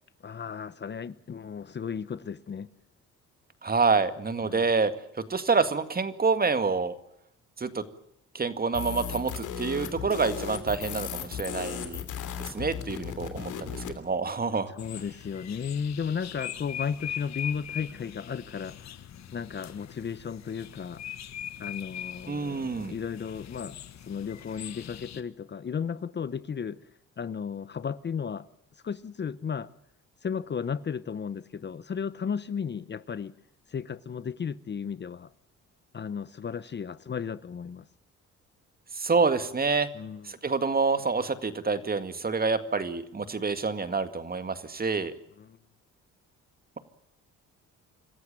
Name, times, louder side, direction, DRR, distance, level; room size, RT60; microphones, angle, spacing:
voice 1, 0.2-2.7 4.4-4.7 14.7-19.0 19.3-21.0 21.6-23.8 24.1-26.8 27.2-28.5 28.8-29.7 30.2-33.3 33.7-35.3 35.9-37.9 39.9-40.3 45.4-45.6, left 6 dB, 35° left, 0.8 m, -34 dB
voice 2, 3.6-4.9 5.3-7.0 7.6-7.8 8.3-12.0 12.4-14.7 22.3-22.9 38.9-39.9 40.2-45.1, right 4 dB, 30° right, 2.0 m, -27 dB
sound 1, 8.7-14.0, left 8 dB, 80° left, 3.2 m, -36 dB
sound 2, 14.8-25.2, left 10 dB, 65° left, 1.5 m, -41 dB
26.5 x 14.5 x 9.1 m
cardioid pair, 90°, 30 cm